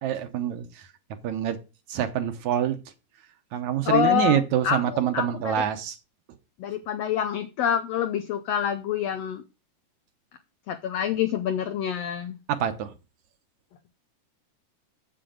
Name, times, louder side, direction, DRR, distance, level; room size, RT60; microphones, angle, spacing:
voice 1, 0.0-0.9 1.2-1.6 1.9-2.8 3.5-6.0 12.5-12.9, right 10 dB, 70° right, 2.1 m, -26 dB
voice 2, 3.8-5.6 6.6-9.4 10.7-12.4, left 9 dB, 85° left, 1.4 m, -27 dB
7.8 x 7.7 x 5.0 m
omnidirectional pair, 3.8 m